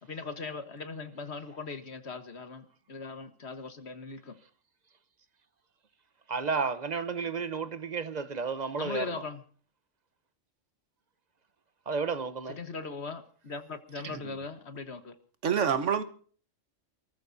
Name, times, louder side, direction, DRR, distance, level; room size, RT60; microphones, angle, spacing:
voice 1, 0.0-4.4 8.7-9.4 12.5-15.1, left 4 dB, 60° left, 1.6 m, -39 dB
voice 2, 6.3-9.2 11.9-12.6, right 5 dB, 40° right, 0.9 m, -32 dB
voice 3, 15.4-16.0, right 7 dB, 70° right, 1.6 m, -27 dB
29.0 x 14.0 x 2.7 m
omnidirectional pair, 1.3 m